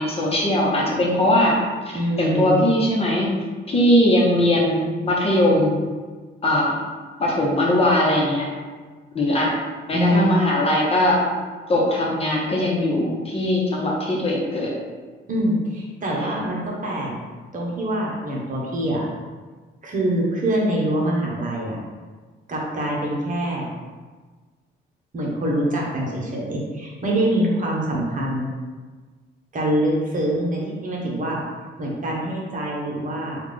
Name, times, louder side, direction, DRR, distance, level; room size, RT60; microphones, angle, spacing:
voice 1, 0.0-1.6 1.9-3.3 3.7-5.8 6.4-6.8 7.2-8.5 9.1-9.5 9.9-11.2 11.7-14.7, left 1 dB, 30° left, -3 dB, 1.0 m, -20 dB
voice 2, 1.9-2.7 9.9-10.3 15.3-17.2 17.5-19.0 19.8-21.8 22.5-23.7 25.1-28.5 29.5-31.4 31.8-33.4, right 1 dB, 40° right, -3 dB, 1.0 m, -24 dB
3.5 x 2.5 x 3.4 m, 1.4 s
cardioid pair, 90°, 20 cm